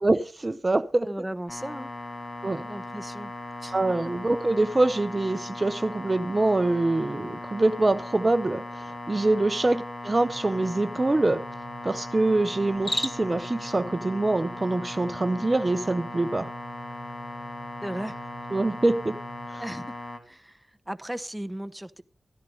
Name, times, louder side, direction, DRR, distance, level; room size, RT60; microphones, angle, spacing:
voice 1, 0.0-1.1 2.4-2.7 3.7-11.4 11.8-16.5 18.5-19.2 19.5-19.6, right 2 dB, 35° right, 0.7 m, -25 dB
voice 2, 1.0-1.9 2.7-3.3 3.6-3.8 9.7-9.8 17.8-18.2 19.6-19.9 20.3-22.0, right 1 dB, 10° right, 0.9 m, -36 dB
sound 1, 1.5-20.2, left 2 dB, 45° left, 2.7 m, -38 dB
sound 2, 10.2-19.5, right 7 dB, 80° right, 1.0 m, -48 dB
Cricket, 12.7-13.4, left 1 dB, 20° left, 0.9 m, -31 dB
14.0 x 10.5 x 5.3 m
cardioid pair, 45°, 0 cm